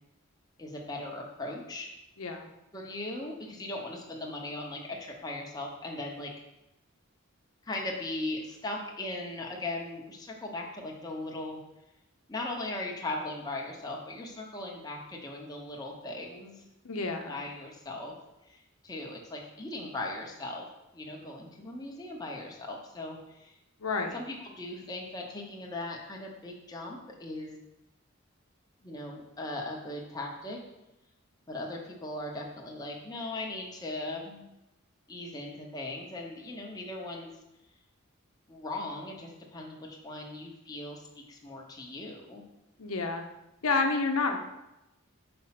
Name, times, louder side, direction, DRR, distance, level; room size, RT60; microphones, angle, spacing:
voice 1, 0.6-1.9 2.7-6.3 7.6-11.6 12.3-16.6 17.3-18.1 18.5-20.7 20.9-23.5 24.1-27.6 28.8-30.6 31.5-34.4 35.1-37.3 38.5-42.4, left 2 dB, 20° left, -1 dB, 0.9 m, -38 dB
voice 2, 2.2-2.5 16.8-17.4 23.8-24.2 42.8-43.2 43.6-44.4, left 3 dB, 85° left, 4 dB, 0.8 m, -29 dB
5.1 x 4.3 x 5.8 m, 0.93 s
head